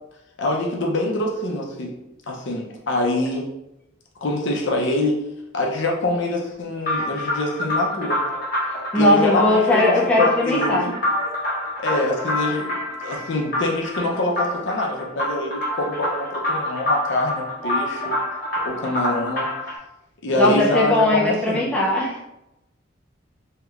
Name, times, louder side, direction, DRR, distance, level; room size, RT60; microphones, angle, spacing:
voice 1, 0.4-1.9 2.3-3.5 4.2-5.2 5.5-8.2 8.9-10.9 11.8-12.7 13.0-18.1 18.6-19.5 20.2-21.7, left 1 dB, 65° left, -1 dB, 0.6 m, -25 dB
sound 1, 6.8-19.8, left 1 dB, 45° left, 0.9 m, -27 dB
voice 2, 8.9-10.9 20.4-22.2, left 1 dB, 5° left, -6 dB, 0.4 m, -19 dB
3.2 x 2.8 x 2.4 m, 0.89 s
head